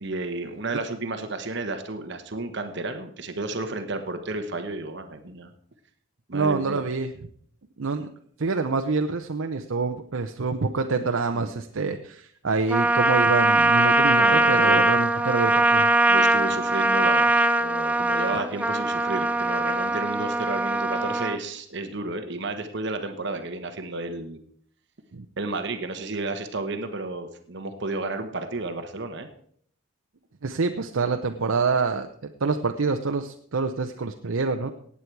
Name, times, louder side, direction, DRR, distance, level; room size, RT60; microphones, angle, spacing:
voice 1, 0.0-5.5 6.3-6.8 11.3-11.5 14.2-14.9 16.1-24.4 25.4-29.3, right 2 dB, 55° right, 7 dB, 1.2 m, -32 dB
voice 2, 6.3-7.1 7.8-8.1 8.4-15.9 18.3-18.4 25.1-25.3 30.4-34.7, right 4 dB, 80° right, 6 dB, 0.7 m, -26 dB
Trumpet, 12.7-21.4, right 2 dB, 5° right, 0.4 m, -21 dB
17.5 x 8.5 x 4.7 m, 0.63 s
head